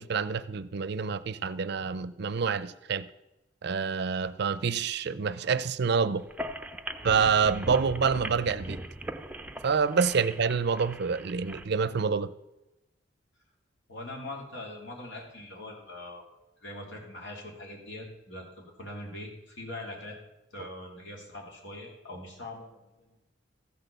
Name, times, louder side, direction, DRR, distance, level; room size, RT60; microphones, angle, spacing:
voice 1, 0.0-3.1 3.6-6.2 7.0-8.8 9.6-12.3, right 5 dB, 60° right, 0.5 m, -27 dB
sound 1, 6.2-11.6, right 1 dB, 10° right, 0.5 m, -39 dB
voice 2, 13.9-16.2 16.6-20.2 20.5-23.3, left 1 dB, 75° left, 3.1 m, -42 dB
14.0 x 6.2 x 6.8 m
head